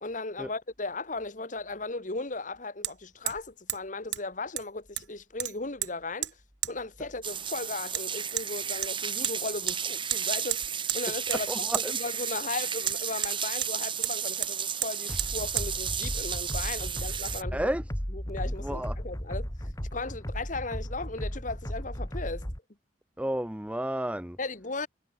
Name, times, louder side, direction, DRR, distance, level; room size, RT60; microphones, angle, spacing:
voice 1, 0.0-6.3 6.7-11.5 12.0-17.6 18.1-19.5 19.9-22.5 24.4-24.9, left 3 dB, 45° left, 2.0 m, -36 dB
Hammer, 0.9-1.0 2.8-2.9 3.3-3.4 3.7-3.8 4.1-4.2 4.6-5.1 5.4-5.9 6.2-6.3 6.6-6.7 7.9-8.0 8.4-8.5 8.8-9.4 9.7-9.8 10.1-10.2 10.5-11.0 11.3-11.4 11.7-11.9 12.8-13.7 14.0-14.2 14.4-14.5 14.8-14.9 15.2-15.3 15.6-15.7, right 13 dB, 75° right, 4.7 m, -32 dB
sound 1, 7.2-17.4, right 8 dB, 30° right, 2.8 m, -33 dB
voice 2, 11.3-12.0 17.5-17.9 18.5-19.0 23.2-24.4, right 1 dB, 5° right, 1.0 m, -32 dB
sound 2, 15.1-22.6, equal, 20° left, 3.2 m, -35 dB
head